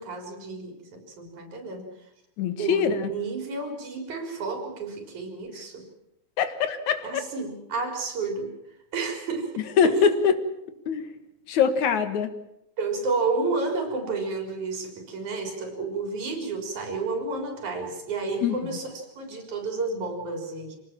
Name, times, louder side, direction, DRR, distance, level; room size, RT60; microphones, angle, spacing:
voice 1, 0.0-1.9 2.6-5.8 7.0-8.5 8.9-10.1 12.8-20.8, right 4 dB, 80° right, 4 dB, 5.3 m, -31 dB
voice 2, 2.4-3.1 6.4-7.2 9.8-10.4 10.9-11.1 11.5-12.3 18.4-18.6, left 7 dB, 75° left, 10 dB, 2.9 m, -23 dB
26.0 x 18.5 x 7.4 m, 0.83 s
omnidirectional pair, 3.4 m